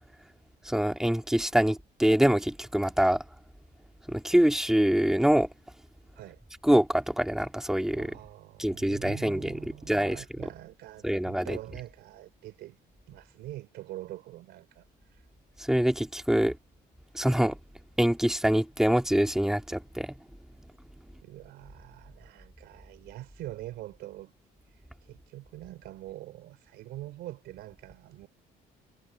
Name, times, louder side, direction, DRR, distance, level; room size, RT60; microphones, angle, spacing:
voice 1, 0.6-3.2 4.1-5.5 6.6-8.1 8.6-10.2 11.0-11.6 15.6-16.6 17.1-17.6 18.0-20.1, equal, 5° right, 2.2 m, -25 dB
voice 2, 7.9-12.8 13.1-15.3 21.2-24.3 24.7-28.3, right 15 dB, 80° right, 3.7 m, -44 dB
cardioid pair, 110°, 17 cm